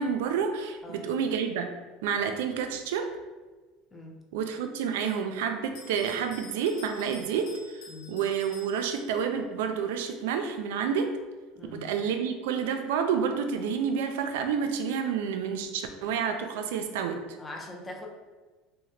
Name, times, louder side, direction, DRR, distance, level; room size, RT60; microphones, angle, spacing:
voice 1, 0.0-1.7 2.0-3.1 4.3-11.1 11.7-17.2, right 7 dB, 90° right, 6 dB, 0.3 m, -29 dB
Bell, 5.7-9.5, left 3 dB, 70° left, 0.5 m, -50 dB
voice 2, 11.6-11.9 17.4-18.1, left 2 dB, 15° left, 0 dB, 0.5 m, -42 dB
2.8 x 2.1 x 3.1 m, 1.3 s
supercardioid pair, 125°, 0 cm